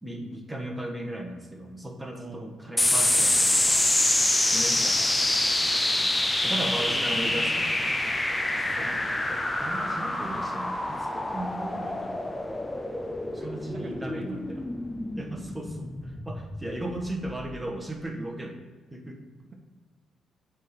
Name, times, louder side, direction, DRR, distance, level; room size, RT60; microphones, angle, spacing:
voice 1, 0.0-3.9 4.5-5.3 6.3-7.8 8.8-9.0 9.3-12.4 13.3-14.6 15.2-18.6 18.9-19.2, right 1 dB, 10° right, 2 dB, 1.2 m, -36 dB
voice 2, 2.2-2.5 4.4-5.1 5.9-8.3 8.6-9.2 13.4-14.6, right 2 dB, 50° right, 3 dB, 1.1 m, -45 dB
sound 1, 2.8-17.6, left 1 dB, 15° left, 0.6 m, -26 dB
7.4 x 3.6 x 5.7 m, 1.4 s
cardioid pair, 90°, 0 cm